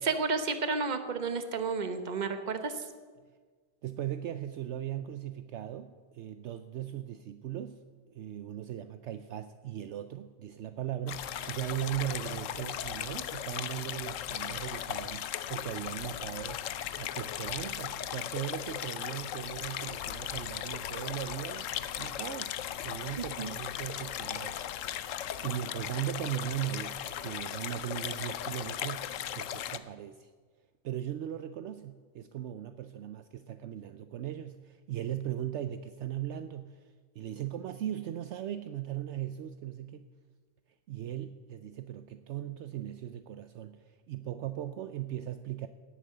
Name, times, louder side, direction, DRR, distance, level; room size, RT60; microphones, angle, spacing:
voice 1, 0.0-2.7 23.4-23.5, right 4 dB, 40° right, 9 dB, 1.1 m, -31 dB
voice 2, 3.8-7.8 8.1-16.7 16.9-21.7 22.0-22.5 22.8-24.9 25.4-30.3 30.8-36.9 37.2-40.1 40.9-45.7, right 11 dB, 70° right, 10 dB, 0.8 m, -38 dB
sound 1, 11.1-29.8, left 10 dB, 80° left, 1.0 m, -37 dB
17.5 x 8.5 x 6.7 m, 1.5 s
omnidirectional pair, 1.3 m